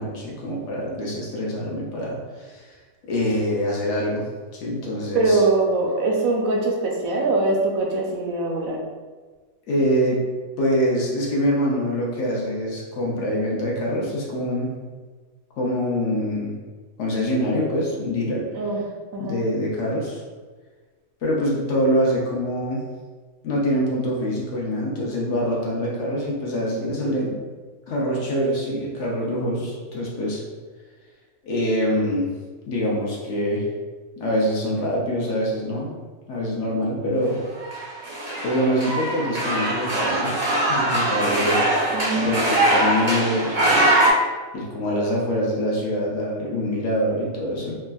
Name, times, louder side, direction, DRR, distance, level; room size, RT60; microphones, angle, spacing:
voice 1, 0.0-2.8 3.0-4.2 4.5-5.4 9.7-10.2 10.6-14.7 15.6-16.5 17.0-18.5 19.2-20.2 21.2-22.8 23.4-27.4 27.9-30.4 31.4-32.3 32.7-33.7 34.2-35.9 36.3-37.4 38.4-40.3 40.7-41.6 42.2-44.2 44.5-47.7, equal, 65° left, -3 dB, 0.9 m, -24 dB
voice 2, 5.1-8.8 18.5-18.8 19.1-19.4 41.9-42.3, right 3 dB, 85° right, -1 dB, 1.0 m, -22 dB
sound 1, 37.6-44.1, right 1 dB, 55° right, 0.4 m, -22 dB
3.4 x 2.0 x 2.2 m, 1.4 s
omnidirectional pair, 1.4 m